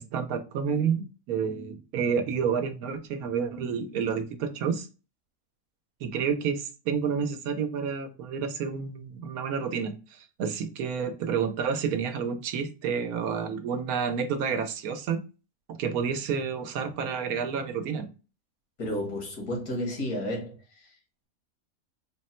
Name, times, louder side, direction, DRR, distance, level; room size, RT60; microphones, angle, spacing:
voice 1, 0.0-4.9 6.0-15.2 15.7-18.1, right 6 dB, 85° right, 1.1 m, -29 dB
voice 2, 18.8-20.6, left 1 dB, 75° left, 1.8 m, -31 dB
3.8 x 2.1 x 4.1 m
omnidirectional pair, 1.5 m